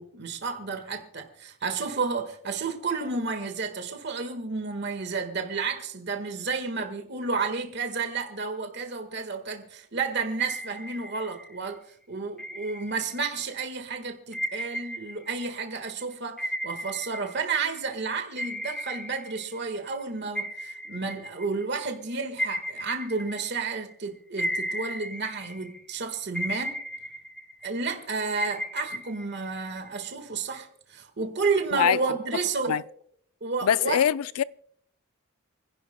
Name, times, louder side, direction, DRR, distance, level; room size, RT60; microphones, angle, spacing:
voice 1, 0.0-11.8 12.1-26.8 27.6-32.8 33.4-34.0, right 4 dB, 50° right, 1.5 m, -31 dB
sound 1, 10.4-11.7 12.4-13.5 14.3-17.9 18.4-20.0 20.3-23.9 24.4-25.9 26.3-27.9 28.4-30.1, equal, 5° left, 0.8 m, -35 dB
voice 2, 33.6-34.4, left 8 dB, 90° left, 0.4 m, -23 dB
29.0 x 11.0 x 2.2 m
head